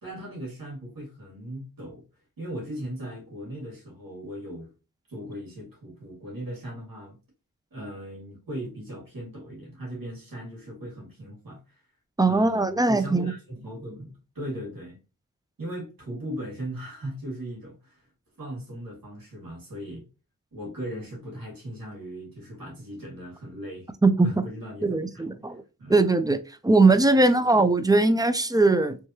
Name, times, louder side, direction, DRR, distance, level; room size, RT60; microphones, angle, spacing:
voice 1, 0.0-2.0 2.4-4.7 5.1-7.2 7.7-11.6 12.2-15.0 15.6-18.0 18.4-20.0 20.5-23.9 24.2-25.3 25.8-26.0, right 1 dB, 85° right, 2.0 m, -38 dB
voice 2, 12.2-13.3 24.0-24.4 24.8-25.6 25.9-26.4 26.6-29.0, right 3 dB, 10° right, 0.4 m, -20 dB
3.4 x 3.2 x 2.7 m
wide cardioid pair, 60°, 33 cm